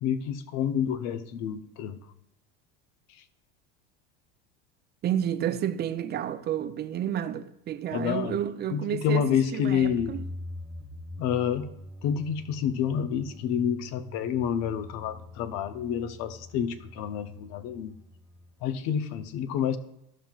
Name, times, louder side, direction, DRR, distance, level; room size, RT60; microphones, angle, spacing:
voice 1, 0.0-2.0 7.9-8.4 8.7-10.1 11.2-11.7 12.0-18.0 18.6-19.8, left 8 dB, 60° left, 0.7 m, -28 dB
voice 2, 5.0-10.3, right 10 dB, 35° right, 0.6 m, -30 dB
sound 1, 9.8-18.7, left 1 dB, ahead, 1.4 m, -44 dB
12.5 x 5.8 x 2.4 m
supercardioid pair, 100°, 30 cm